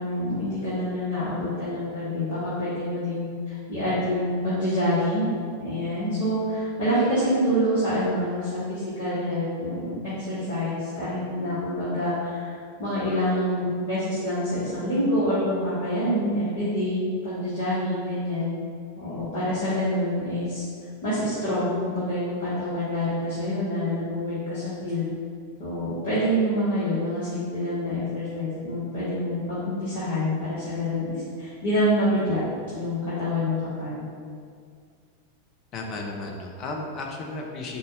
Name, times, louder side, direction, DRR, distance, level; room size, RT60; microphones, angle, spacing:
voice 1, 0.0-5.3 5.6-18.5 19.0-20.6 21.0-25.1 25.6-32.4 32.7-34.0, equal, 50° left, -12 dB, 1.2 m, -26 dB
voice 2, 35.7-37.8, left 2 dB, 35° left, 0 dB, 0.5 m, -34 dB
4.0 x 2.4 x 4.1 m, 2.2 s
figure-of-eight pair, 90°, 0 cm